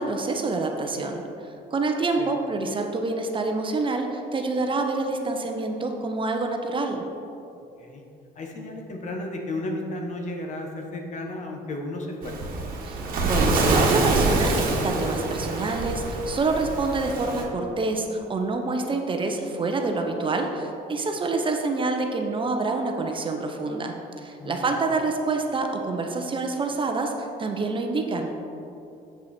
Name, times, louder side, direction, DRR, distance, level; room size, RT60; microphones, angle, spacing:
voice 1, 0.0-7.0 12.8-13.0 13.2-28.3, right 3 dB, 30° right, 3 dB, 0.7 m, -27 dB
voice 2, 8.3-12.3 24.4-24.7, left 1 dB, 45° left, 2 dB, 1.2 m, -33 dB
Waves surf, 12.2-17.4, right 2 dB, 55° right, 1.3 m, -25 dB
7.5 x 6.0 x 4.3 m, 2.8 s
cardioid pair, 110°, 17 cm